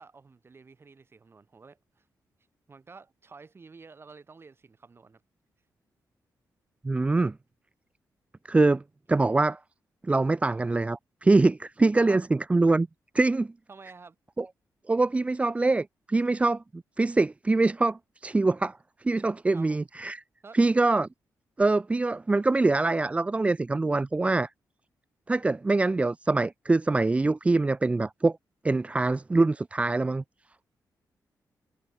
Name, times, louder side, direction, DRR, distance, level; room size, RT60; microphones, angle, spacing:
voice 1, 0.0-2.1 2.7-5.2 7.2-7.3 11.9-12.2 13.7-14.2 19.5-19.9 20.4-20.6, right 4 dB, 35° right, 6.8 m, -50 dB
voice 2, 6.8-7.3 8.5-8.8 9.1-9.6 10.0-12.2 12.5-12.9 13.1-13.5 14.4-14.5 14.9-20.2 20.5-21.1 21.6-24.5 25.3-28.4 28.6-30.2, right 3 dB, 20° right, 0.4 m, -24 dB
cardioid pair, 110°, 7 cm